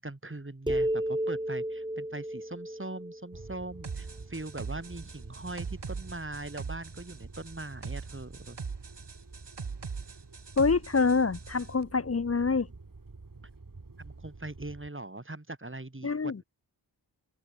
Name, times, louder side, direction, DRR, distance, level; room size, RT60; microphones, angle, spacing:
voice 1, 0.0-8.6 14.0-16.4, right 2 dB, 30° right, 8.0 m, -41 dB
sound 1, 0.7-4.2, right 1 dB, 10° right, 5.7 m, -33 dB
sound 2, 3.3-14.9, right 3 dB, 50° right, 7.3 m, -48 dB
sound 3, 3.8-11.7, right 5 dB, 65° right, 2.6 m, -41 dB
voice 2, 10.6-12.7 16.0-16.4, left 4 dB, 35° left, 0.8 m, -26 dB
open air
wide cardioid pair, 65°, 43 cm